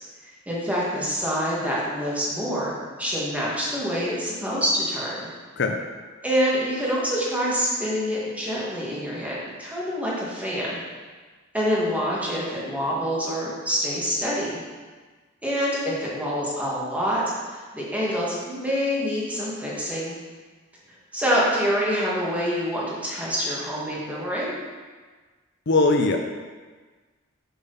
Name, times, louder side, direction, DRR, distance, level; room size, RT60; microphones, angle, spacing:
voice 1, 0.2-5.3 6.2-10.8 11.5-14.6 15.4-20.2 21.1-24.6, equal, 5° right, -6 dB, 1.9 m, -26 dB
voice 2, 25.7-26.2, left 3 dB, 55° left, 4 dB, 0.6 m, -20 dB
6.8 x 6.1 x 5.6 m, 1.4 s
head